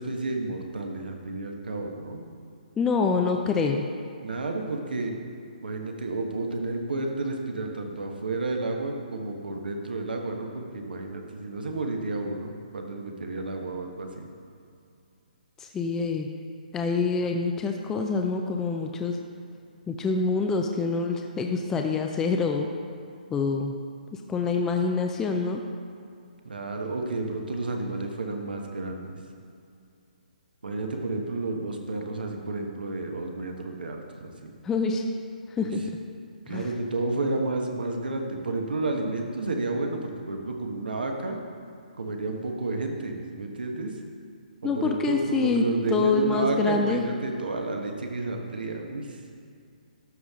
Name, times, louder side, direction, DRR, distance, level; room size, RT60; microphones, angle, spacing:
voice 1, 0.0-2.2 4.2-5.1 5.6-14.3 26.4-29.2 30.6-34.5 35.6-35.7 36.5-41.4 42.0-43.9 44.6-49.2, right 2 dB, 85° right, 2 dB, 1.3 m, -31 dB
voice 2, 2.8-3.9 15.6-16.3 16.7-19.2 19.9-22.7 23.3-23.7 24.3-25.6 34.6-35.0 35.6-35.8 36.5-36.7 44.6-45.6 45.9-47.0, left 4 dB, 10° left, 3 dB, 0.4 m, -26 dB
12.5 x 5.6 x 3.6 m, 2.4 s
hypercardioid pair, 155°, 5 cm